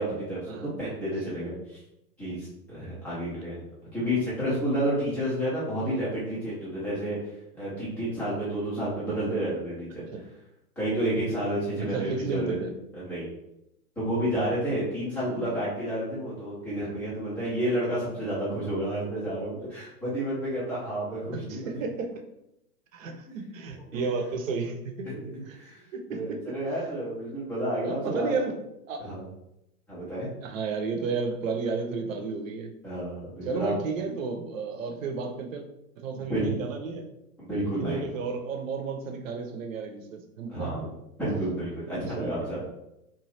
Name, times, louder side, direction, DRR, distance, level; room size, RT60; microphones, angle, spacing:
voice 1, 0.0-1.8 2.2-3.6 3.9-7.2 7.5-10.0 10.8-12.6 12.9-13.3 14.0-21.8 23.9-24.0 25.0-25.8 26.1-28.3 29.0-29.2 29.9-30.3 32.8-33.7 36.1-36.5 37.4-38.1 40.5-40.9 41.2-42.6, right 1 dB, 5° left, -11 dB, 0.3 m, -30 dB
voice 2, 11.8-12.7 15.3-15.5 21.3-22.1 22.9-25.1 25.5-25.6 25.9-26.5 27.8-28.6 28.9-29.1 30.4-32.7 33.4-35.6 36.0-37.1 37.8-40.7 42.2-42.3, right 4 dB, 60° right, 5 dB, 0.7 m, -32 dB
2.9 x 2.3 x 3.1 m, 0.86 s
hypercardioid pair, 120°, 45 cm